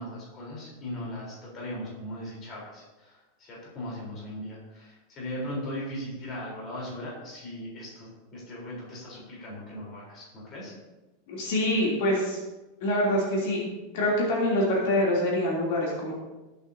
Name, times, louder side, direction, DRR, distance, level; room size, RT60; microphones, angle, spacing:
voice 1, 0.0-10.7, left 1 dB, 25° left, -4 dB, 3.9 m, -38 dB
voice 2, 11.3-12.4 12.8-13.7 13.9-16.1, left 1 dB, 55° left, -4 dB, 3.0 m, -25 dB
19.0 x 8.8 x 2.8 m, 1.1 s
supercardioid pair, 175°, 0 cm